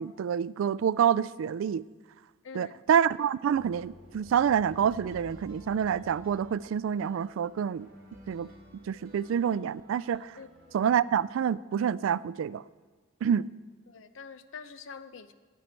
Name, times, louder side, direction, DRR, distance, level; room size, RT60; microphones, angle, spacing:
voice 1, 0.0-1.8 2.5-7.9 8.3-8.5 8.9-10.4 10.7-12.6 13.2-13.5, right 8 dB, 75° right, 19 dB, 0.3 m, -27 dB
voice 2, 2.4-2.8 10.4-10.5 13.9-15.3, left 5 dB, 75° left, 12 dB, 0.6 m, -45 dB
Retro Scary Ethereal Ambient, 3.5-10.9, equal, 50° right, 2.2 m, -52 dB
14.5 x 9.4 x 4.4 m, 1.4 s
head